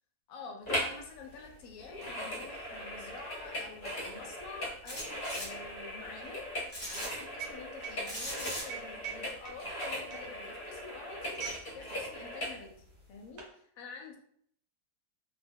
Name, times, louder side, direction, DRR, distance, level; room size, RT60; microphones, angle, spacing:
voice 1, 0.3-11.4 11.7-12.7 13.1-13.4 13.8-14.2, left 4 dB, 70° left, 2 dB, 1.0 m, -48 dB
sound 1, 0.7-1.0 1.3-12.6 13.1-13.2, equal, 40° left, 0.9 m, -39 dB
sound 2, 1.4-1.5 1.7-11.7 12.0-12.3 12.9-13.6, right 7 dB, 70° right, 1.0 m, -47 dB
sound 3, 4.9-5.5 6.7-7.1 8.1-8.6, equal, 15° left, 1.1 m, -39 dB
2.6 x 2.2 x 3.4 m, 0.65 s
omnidirectional pair, 1.6 m